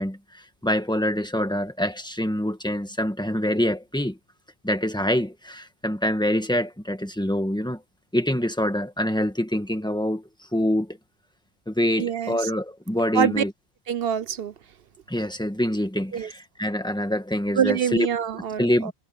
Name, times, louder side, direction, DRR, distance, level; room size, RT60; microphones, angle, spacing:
voice 1, 0.0-4.2 4.6-7.8 8.1-11.0 11.7-13.5 15.1-18.1 18.6-18.9, left 1 dB, 5° left, 1.5 m, -25 dB
voice 2, 12.0-12.5 13.1-13.4 13.9-14.5 16.1-16.3 17.5-18.9, right 8 dB, 65° right, 0.9 m, -25 dB
omnidirectional pair, 1.1 m